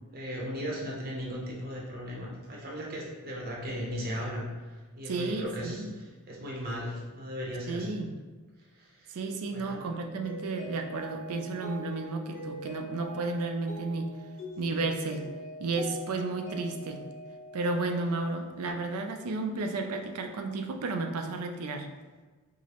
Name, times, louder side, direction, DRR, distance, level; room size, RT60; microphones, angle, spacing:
voice 1, 0.1-4.5 4.9-7.9 8.8-9.1 9.5-9.8, equal, 45° right, -3 dB, 0.7 m, -37 dB
voice 2, 5.1-6.0 7.7-8.1 9.1-14.1 14.6-15.3 15.6-17.0 17.5-21.9, right 3 dB, 85° right, 5 dB, 0.4 m, -32 dB
Mallet percussion, 10.2-18.4, equal, 75° left, 1.0 m, -43 dB
4.7 x 2.0 x 2.9 m, 1.3 s
head